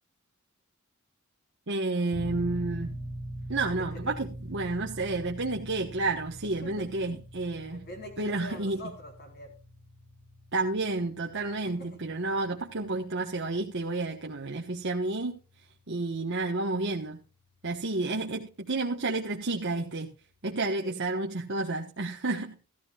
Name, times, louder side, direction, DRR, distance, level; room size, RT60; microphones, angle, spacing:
voice 1, 1.7-2.9 3.5-7.8 8.2-8.8 10.5-15.4 15.9-17.2 17.6-20.1 20.4-22.6, right 2 dB, 60° right, 0 dB, 1.3 m, -30 dB
sound 1, 2.1-16.5, right 1 dB, 10° left, 1.5 m, -43 dB
voice 2, 3.8-4.1 6.6-7.2 7.7-9.5 11.8-12.1 18.0-18.3 20.8-21.0, equal, 50° left, 4 dB, 4.1 m, -45 dB
14.5 x 14.0 x 2.4 m, 0.33 s
head